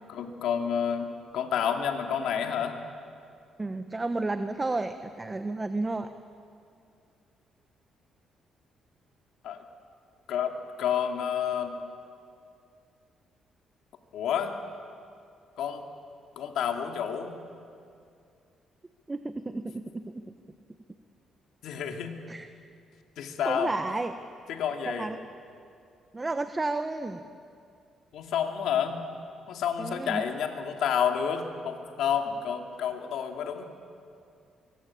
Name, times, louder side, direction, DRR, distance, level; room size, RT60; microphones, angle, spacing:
voice 1, 0.1-2.8 9.4-9.6 10.3-11.8 14.1-14.6 15.6-15.8 16.4-17.4 21.6-22.2 23.2-23.7 24.5-25.1 28.1-29.0 29.5-33.6, left 8 dB, 80° left, 3 dB, 2.6 m, -29 dB
voice 2, 3.6-6.1 19.1-20.2 22.3-22.5 23.4-24.1 24.9-25.2 26.1-27.2 29.8-30.2, right 2 dB, 20° right, 8 dB, 1.2 m, -32 dB
23.5 x 23.5 x 8.6 m, 2.4 s
cardioid pair, 90°, 0 cm